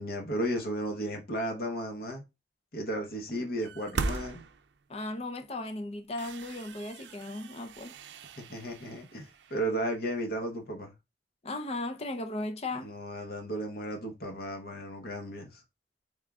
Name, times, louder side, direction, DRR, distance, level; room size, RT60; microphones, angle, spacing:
voice 1, 0.0-2.2 2.7-4.4 8.4-10.9 12.8-15.6, right 1 dB, 55° left, 1.0 m, -34 dB
sound 1, 3.6-5.0 5.6-5.7 6.1-10.0, right 3 dB, 75° right, 0.5 m, -39 dB
voice 2, 4.9-7.9 11.4-12.9, left 2 dB, 35° left, 0.6 m, -36 dB
3.6 x 3.5 x 3.5 m
head